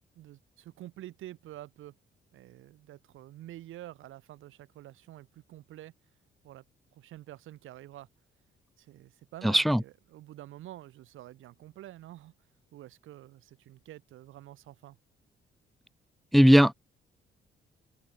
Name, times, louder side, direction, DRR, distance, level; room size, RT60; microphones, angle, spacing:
voice 1, 0.2-2.0 2.3-5.9 6.4-6.6 6.9-8.1 8.8-12.3 12.7-15.0, right 14 dB, 85° right, 7.4 m, -48 dB
voice 2, 9.4-9.8 16.3-16.7, equal, ahead, 0.8 m, -18 dB
cardioid pair, 90°, 20 cm